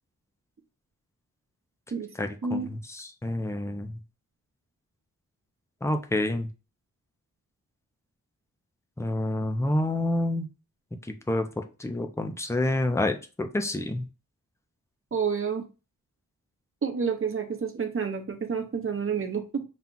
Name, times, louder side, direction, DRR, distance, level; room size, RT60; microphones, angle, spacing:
voice 1, 2.2-4.0 5.8-6.5 9.0-10.5 11.3-11.5 11.8-14.0, left 1 dB, 10° left, 5 dB, 0.6 m, -28 dB
voice 2, 15.1-15.6 16.8-19.6, right 6 dB, 40° right, 4 dB, 0.9 m, -29 dB
5.8 x 2.4 x 3.8 m, 0.32 s
wide cardioid pair, 125°, 33 cm